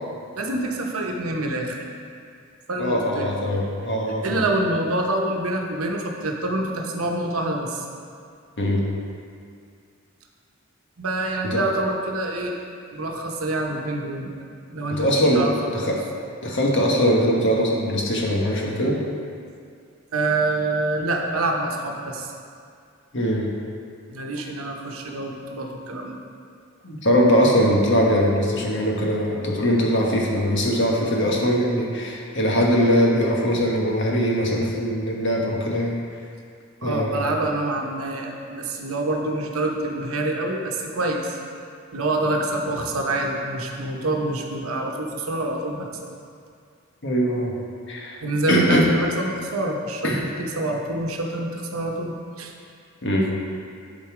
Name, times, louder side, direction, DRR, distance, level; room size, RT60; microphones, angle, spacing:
voice 1, 0.4-1.8 2.7-3.3 4.2-7.8 11.0-12.6 12.9-14.3 14.7-16.0 20.1-22.3 24.1-26.2 31.1-31.3 36.8-41.4 41.9-45.9 48.2-52.5, right 2 dB, 85° right, 1 dB, 1.0 m, -26 dB
voice 2, 2.8-4.4 8.6-8.8 11.5-11.6 15.0-15.4 15.7-16.0 16.4-19.0 23.1-23.4 26.8-36.0 36.8-37.2 47.0-47.5 47.9-48.2 48.5-48.9 50.0-50.2 53.0-53.3, equal, 60° left, -2 dB, 1.3 m, -21 dB
10.5 x 4.1 x 4.9 m, 2.3 s
head